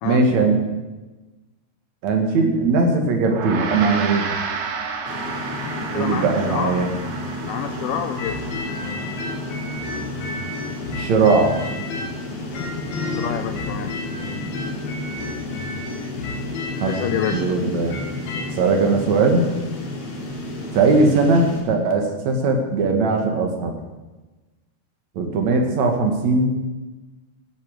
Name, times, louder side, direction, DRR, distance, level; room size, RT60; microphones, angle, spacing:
voice 1, 0.0-0.6 2.0-4.3 5.9-6.9 10.9-11.5 16.8-16.9 17.3-18.0 18.6-19.5 20.7-23.7 25.2-26.5, right 3 dB, 50° right, 3 dB, 2.7 m, -19 dB
Gong, 3.3-12.9, right 5 dB, 85° right, 3.7 m, -33 dB
sound 1, 5.0-21.6, left 2 dB, 40° left, 3.9 m, -32 dB
voice 2, 5.7-6.9 7.5-8.5 13.0-14.0 16.9-17.5, left 9 dB, 90° left, 6 dB, 1.8 m, -28 dB
sound 2, 8.2-12.2 12.5-18.5, left 3 dB, 70° left, 3.7 m, -32 dB
16.5 x 8.6 x 6.5 m, 1.2 s
omnidirectional pair, 4.8 m